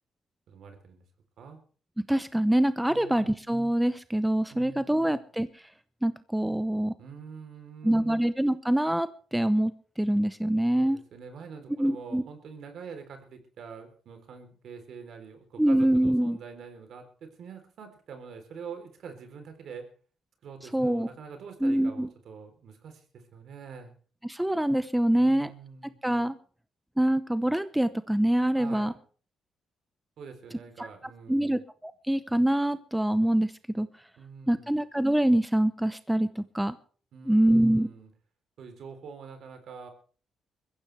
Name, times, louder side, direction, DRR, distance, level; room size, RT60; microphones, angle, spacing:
voice 1, 0.5-1.0 1.4-1.6 2.9-3.3 4.5-5.2 7.0-8.2 10.8-19.9 20.4-23.9 25.1-26.0 28.6-29.0 30.2-31.6 34.2-34.8 37.1-38.1 38.6-39.9, right 6 dB, 65° right, 7 dB, 3.7 m, -45 dB
voice 2, 2.1-5.6 6.0-6.9 7.8-11.0 11.8-12.2 15.6-16.4 20.7-21.1 21.6-22.1 24.2-25.5 26.0-26.3 27.0-28.9 31.3-33.9 34.5-36.8 37.3-37.9, right 1 dB, 5° right, 13 dB, 0.7 m, -25 dB
22.0 x 15.0 x 3.4 m, 0.42 s
cardioid pair, 90°, 0 cm